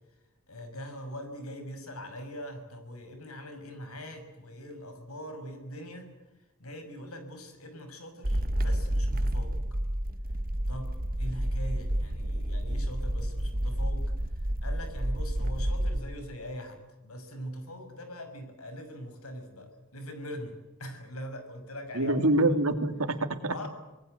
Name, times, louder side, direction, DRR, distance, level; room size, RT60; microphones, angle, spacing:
voice 1, 0.5-6.1 6.6-9.6 10.7-14.1 14.3-22.2 22.5-22.6 23.5-23.7, equal, 85° left, 7 dB, 6.1 m, -42 dB
sound 1, 8.2-16.0, right 1 dB, 45° right, 1.5 m, -30 dB
voice 2, 21.9-23.7, right 2 dB, 75° right, 8 dB, 2.7 m, -26 dB
26.0 x 21.0 x 8.0 m, 1.1 s
head